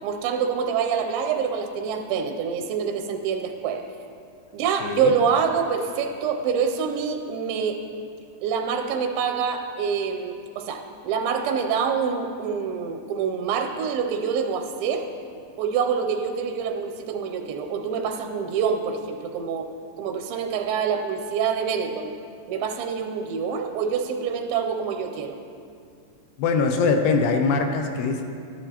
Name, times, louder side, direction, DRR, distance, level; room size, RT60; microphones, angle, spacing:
voice 1, 0.0-3.8 4.5-7.8 8.4-15.1 15.6-19.7 20.0-22.1 22.5-25.4, right 6 dB, 90° right, 5 dB, 2.4 m, -26 dB
voice 2, 4.8-5.2 26.4-28.2, left 4 dB, 80° left, 5 dB, 2.4 m, -22 dB
13.0 x 11.0 x 2.9 m, 2.4 s
omnidirectional pair, 4.1 m